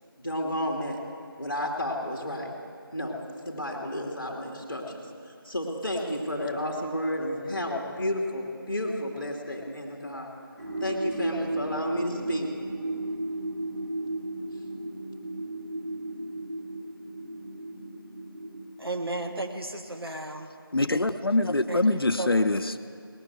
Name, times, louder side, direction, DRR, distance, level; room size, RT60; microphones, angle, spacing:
voice 1, 0.2-1.0 1.4-2.5 2.9-3.2 3.4-10.3 10.8-12.5, left 1 dB, 5° left, -18 dB, 0.6 m, -31 dB
sound 1, 10.6-18.6, right 2 dB, 50° right, 3.2 m, -34 dB
voice 2, 18.8-20.5 21.7-22.5, right 2 dB, 80° right, 4 dB, 1.5 m, -34 dB
voice 3, 20.7-22.8, left 2 dB, 70° left, 9 dB, 0.7 m, -24 dB
19.0 x 6.9 x 9.3 m, 2.3 s
figure-of-eight pair, 170°, 13 cm